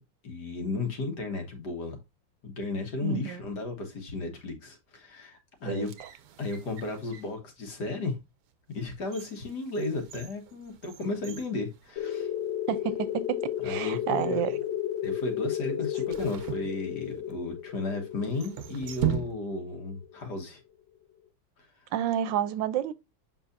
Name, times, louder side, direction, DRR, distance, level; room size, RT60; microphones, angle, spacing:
voice 1, 0.2-2.0 2.4-5.9 6.4-8.2 8.7-12.3 13.6-14.5 15.0-20.6, left 3 dB, 65° left, 2.1 m, -34 dB
voice 2, 3.0-3.4 5.7-6.1 12.7-14.6 21.9-22.9, right 10 dB, 85° right, 1.3 m, -30 dB
sound 1, 5.7-7.4 8.0-8.2 8.7-12.5 12.8-12.9 13.7-14.1 16.1-17.4 18.2-19.8 20.0-20.1, right 10 dB, 65° right, 1.1 m, -38 dB
sound 2, 12.0-20.3, left 11 dB, 90° left, 1.5 m, -33 dB
7.3 x 5.5 x 2.6 m
omnidirectional pair, 2.0 m